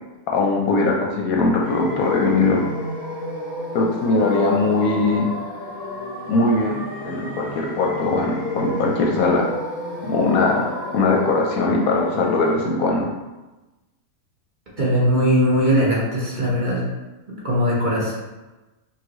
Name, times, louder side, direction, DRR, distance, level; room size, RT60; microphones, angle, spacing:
voice 1, 0.3-2.6 3.7-5.3 6.3-6.8 7.0-9.4 10.0-10.7 10.9-13.1, left 3 dB, 70° left, -1 dB, 0.9 m, -20 dB
sound 1, 1.6-12.5, left 1 dB, 15° left, 1.1 m, -32 dB
voice 2, 14.8-16.8 17.3-18.1, equal, 35° right, -6 dB, 1.1 m, -20 dB
5.5 x 2.5 x 3.0 m, 1.1 s
omnidirectional pair, 1.7 m